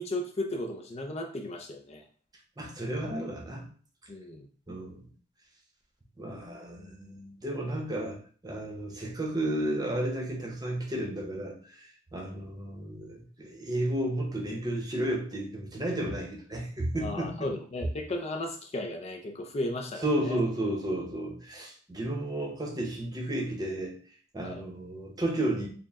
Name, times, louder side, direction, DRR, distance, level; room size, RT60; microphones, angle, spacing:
voice 1, 0.0-2.0 4.1-4.5 17.0-20.4 24.4-24.6, left 1 dB, 35° left, 3 dB, 0.4 m, -35 dB
voice 2, 2.6-3.7 4.7-5.1 6.2-17.5 20.0-24.0 24.3-25.7, right 1 dB, 20° right, 1 dB, 0.7 m, -32 dB
4.3 x 2.0 x 3.5 m, 0.43 s
head